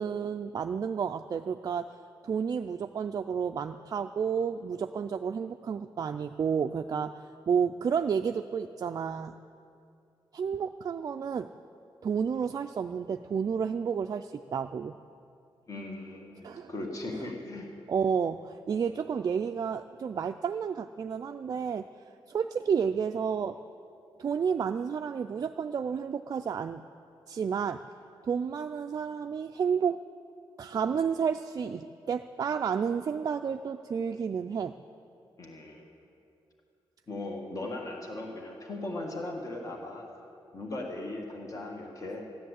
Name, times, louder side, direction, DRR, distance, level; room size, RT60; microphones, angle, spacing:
voice 1, 0.0-1.9 2.2-9.4 10.3-11.5 12.0-15.0 16.4-16.7 17.9-21.9 22.3-23.6 24.2-26.8 27.3-27.8 28.2-30.0 30.6-34.7, right 6 dB, 40° right, 7 dB, 0.3 m, -31 dB
voice 2, 15.7-17.7 35.4-35.8 37.1-40.1 40.5-42.2, left 2 dB, 35° left, 1 dB, 1.7 m, -38 dB
14.5 x 10.0 x 8.1 m, 2.5 s
wide cardioid pair, 155°, 9 cm